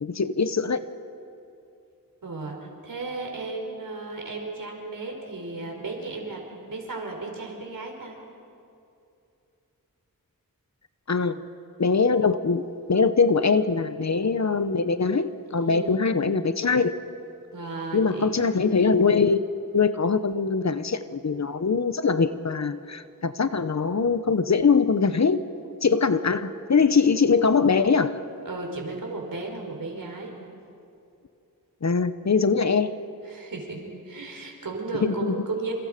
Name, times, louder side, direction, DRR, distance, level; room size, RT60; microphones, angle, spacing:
voice 1, 0.0-0.8 11.1-11.4 11.8-12.6 12.9-16.9 17.9-19.4 19.7-25.5 25.8-28.2 31.8-32.9 35.0-35.4, left 5 dB, 50° left, 11 dB, 1.0 m, -22 dB
voice 2, 2.2-8.2 15.6-16.1 17.5-18.4 28.4-30.3 33.2-35.7, right 3 dB, 70° right, 1 dB, 4.9 m, -34 dB
28.0 x 28.0 x 5.2 m, 2.6 s
wide cardioid pair, 85°, 34 cm